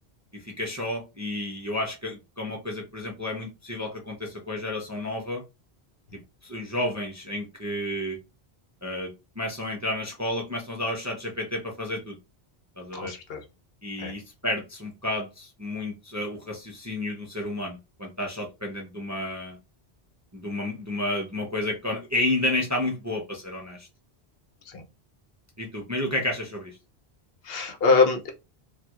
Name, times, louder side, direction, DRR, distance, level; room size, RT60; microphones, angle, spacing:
voice 1, 0.3-5.4 6.1-8.2 8.8-12.2 12.8-13.1 13.8-19.6 20.3-23.9 25.6-26.7, left 1 dB, 20° right, 0.5 m, -31 dB
voice 2, 12.9-13.4 14.0-14.1 24.7-24.8 27.4-28.3, left 4 dB, 70° left, 0.9 m, -23 dB
4.3 x 2.4 x 2.4 m
omnidirectional pair, 1.1 m